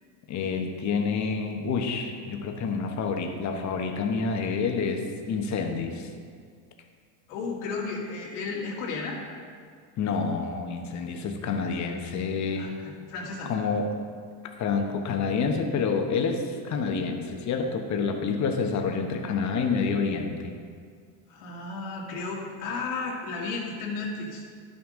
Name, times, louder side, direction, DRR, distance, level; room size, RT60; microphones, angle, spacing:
voice 1, 0.3-6.1 10.0-12.7 13.5-13.9 14.4-20.5, left 5 dB, 40° left, 4 dB, 1.0 m, -28 dB
voice 2, 7.3-9.2 12.5-13.5 21.3-24.4, left 4 dB, 85° left, -2 dB, 2.0 m, -33 dB
11.0 x 6.2 x 3.7 m, 2.1 s
supercardioid pair, 120°, 45 cm